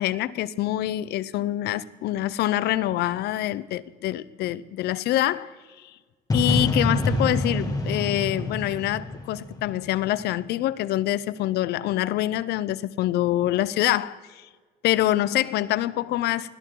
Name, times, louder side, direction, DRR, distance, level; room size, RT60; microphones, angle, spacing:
voice 1, 0.0-5.5 6.3-14.5 14.8-16.5, left 14 dB, 75° left, 18 dB, 0.7 m, -25 dB
sound 1, 6.3-10.2, left 1 dB, 20° left, 2.3 m, -26 dB
21.0 x 17.0 x 3.9 m, 1.4 s
cardioid pair, 110°, 17 cm